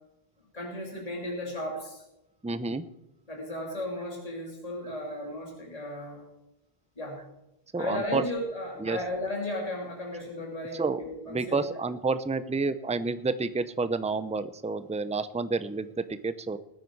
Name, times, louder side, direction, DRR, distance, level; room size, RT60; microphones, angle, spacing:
voice 1, 0.5-2.0 3.3-6.3 7.0-7.2 7.8-11.6, left 1 dB, 35° left, -2 dB, 3.2 m, -35 dB
voice 2, 2.4-2.8 7.7-8.2 8.8-9.0 10.7-11.0 11.3-16.6, right 4 dB, 10° right, 12 dB, 0.5 m, -29 dB
20.5 x 9.5 x 4.7 m, 0.93 s
omnidirectional pair, 1.0 m